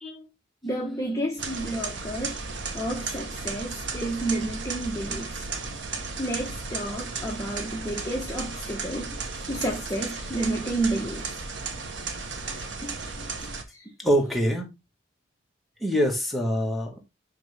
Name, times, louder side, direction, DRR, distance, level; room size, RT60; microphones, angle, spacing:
voice 1, 0.6-2.4 2.7-5.3 6.2-9.1 9.5-11.3 13.7-13.8, right 1 dB, 15° left, 1.1 m, -30 dB
sound 1, 1.4-13.6, right 4 dB, 70° right, 1.3 m, -34 dB
voice 2, 12.8-13.5 14.0-14.7 15.8-17.0, equal, ahead, 1.9 m, -26 dB
10.5 x 3.9 x 3.5 m
head